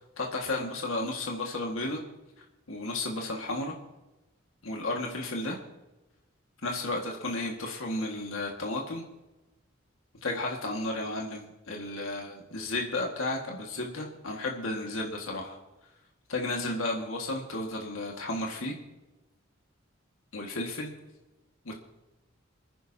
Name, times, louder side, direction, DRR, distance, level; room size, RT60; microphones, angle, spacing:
voice 1, 0.2-2.0 2.7-3.8 4.6-5.6 6.6-9.0 10.2-15.6 16.3-18.8 20.3-20.9 21.7-21.8, left 2 dB, 80° left, 0 dB, 1.9 m, -33 dB
29.5 x 10.0 x 2.9 m, 1.1 s
head